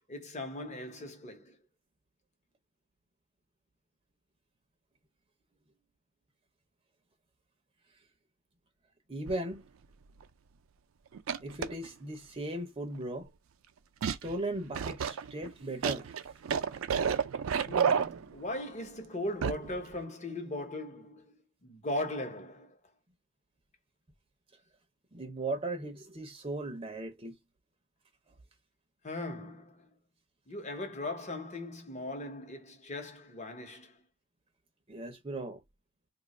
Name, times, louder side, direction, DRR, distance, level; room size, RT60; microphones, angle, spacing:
voice 1, 0.0-1.6 17.7-21.3 21.6-22.8 29.0-29.9 30.5-34.0, left 1 dB, 35° left, 0.9 m, -39 dB
voice 2, 9.1-9.6 11.4-13.3 14.1-16.2 25.1-27.3 34.9-35.6, right 2 dB, 25° right, 0.6 m, -37 dB
sound 1, 9.3-9.5 10.2-10.3 11.1-11.9 14.0-14.4 14.7-18.6 19.4-19.8 20.0-20.1, right 7 dB, 80° right, 0.4 m, -31 dB
2.8 x 2.4 x 4.1 m
head